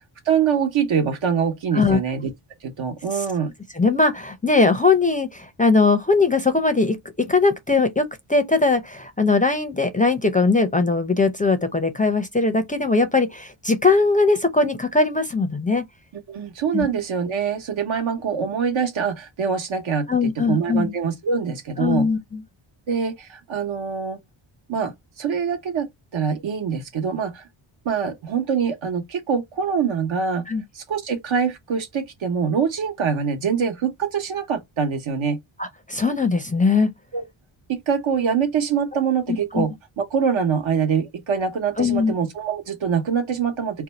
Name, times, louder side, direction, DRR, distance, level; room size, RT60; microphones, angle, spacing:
voice 1, 0.3-2.3 2.6-3.5 16.3-20.1 20.4-22.1 22.9-24.2 24.7-27.4 27.8-30.4 30.7-35.4 37.1-37.2 37.7-43.8, right 6 dB, 65° right, 1.1 m, -24 dB
voice 2, 3.7-15.8 16.7-16.9 20.1-20.9 21.8-22.4 30.5-30.6 35.6-36.9 39.3-39.6 41.8-42.1, left 3 dB, 15° left, 0.5 m, -20 dB
2.7 x 2.3 x 4.0 m
cardioid pair, 90°, 50 cm